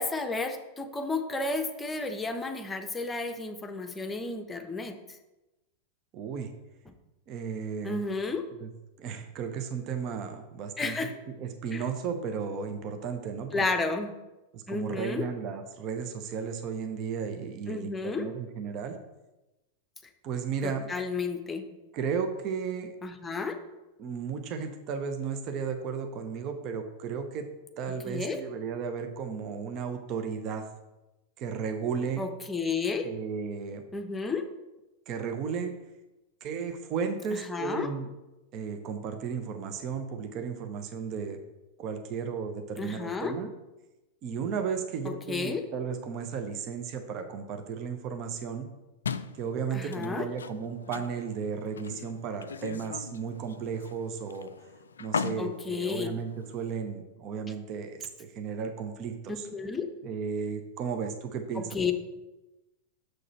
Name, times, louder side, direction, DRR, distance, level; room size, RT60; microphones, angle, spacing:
voice 1, 0.0-4.9 7.8-8.4 10.8-11.1 11.7-11.8 13.5-14.1 14.7-15.2 17.7-18.2 20.6-21.6 23.0-23.6 28.1-28.4 32.2-33.1 33.9-34.4 37.3-37.9 42.8-43.3 45.0-45.6 49.7-50.3 55.4-56.1 59.4-59.9 61.7-61.9, left 4 dB, 15° left, 7 dB, 0.9 m, -32 dB
voice 2, 6.1-6.5 7.3-8.0 8.5-8.7 9.0-11.1 11.4-13.9 14.5-19.0 20.2-20.9 21.9-22.9 24.0-27.5 27.8-30.6 31.4-32.3 33.0-33.8 35.1-35.7 36.4-38.1 38.5-41.4 41.8-43.5 44.2-48.7 49.3-54.5 55.0-59.5 60.0-61.9, right 6 dB, 40° right, 7 dB, 0.8 m, -34 dB
sound 1, 49.0-56.8, left 6 dB, 70° left, 0.3 m, -39 dB
6.6 x 6.3 x 4.4 m, 1.0 s
figure-of-eight pair, 90°, 0 cm